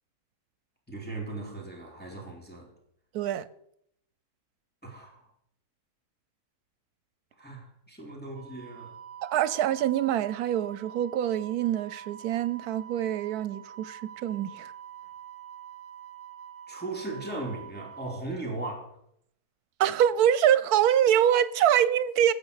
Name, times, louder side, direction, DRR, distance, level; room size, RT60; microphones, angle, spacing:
voice 1, 0.9-2.7 4.8-5.3 7.4-9.0 16.7-19.0, right 2 dB, 5° left, 2.6 m, -38 dB
voice 2, 3.1-3.5 9.2-14.7 19.8-22.3, right 10 dB, 80° right, 1.2 m, -25 dB
Wind instrument woodwind instrument, 8.3-18.2, right 9 dB, 55° right, 1.4 m, -46 dB
17.5 x 6.4 x 6.5 m
omnidirectional pair, 1.6 m